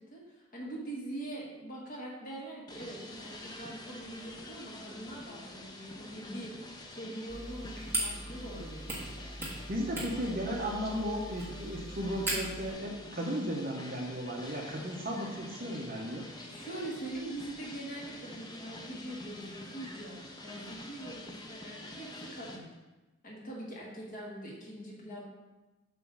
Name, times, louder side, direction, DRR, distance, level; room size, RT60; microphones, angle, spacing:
voice 1, 0.0-6.5 6.9-9.3 16.4-20.2 20.4-22.6 23.2-25.3, right 1 dB, 45° left, -3 dB, 1.7 m, -43 dB
sound 1, 2.7-22.6, left 1 dB, 20° left, 0.6 m, -47 dB
sound 2, 7.3-12.7, right 1 dB, 10° right, 1.6 m, -39 dB
voice 2, 9.7-16.3, equal, 45° right, -2 dB, 0.8 m, -35 dB
7.5 x 3.1 x 6.0 m, 1.1 s
head